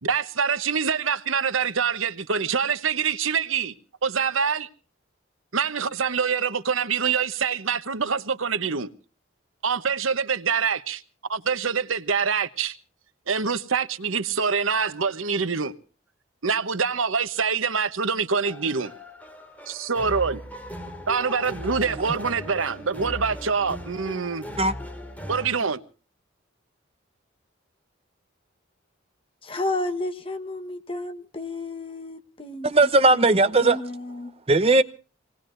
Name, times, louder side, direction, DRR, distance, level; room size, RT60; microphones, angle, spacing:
voice 1, 0.0-3.7 4.0-4.7 5.5-8.9 9.6-11.0 11.3-12.8 13.3-15.7 16.4-18.9 19.7-20.4 21.1-24.4 25.3-25.8, right 6 dB, 90° right, 1.0 m, -25 dB
sound 1, 18.3-25.5, equal, 10° left, 3.0 m, -38 dB
voice 2, 29.4-34.3, left 2 dB, 25° left, 1.2 m, -32 dB
voice 3, 32.6-33.8 34.5-34.8, right 2 dB, 30° right, 0.8 m, -18 dB
26.0 x 19.5 x 2.6 m
head